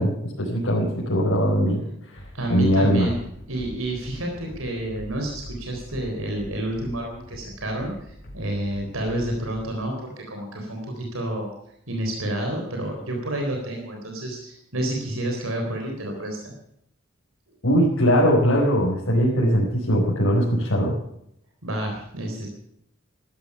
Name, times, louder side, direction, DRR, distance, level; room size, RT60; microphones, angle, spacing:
voice 1, 0.0-1.8 2.1-2.2 2.5-3.1 17.6-20.9, equal, 70° left, -4 dB, 5.0 m, -20 dB
sound 1, 2.1-9.7, equal, 45° left, 4.5 m, -43 dB
voice 2, 2.3-3.2 3.5-11.5 11.9-16.5 21.6-22.5, right 1 dB, 85° right, 2 dB, 3.9 m, -29 dB
14.0 x 12.5 x 7.1 m, 0.72 s
head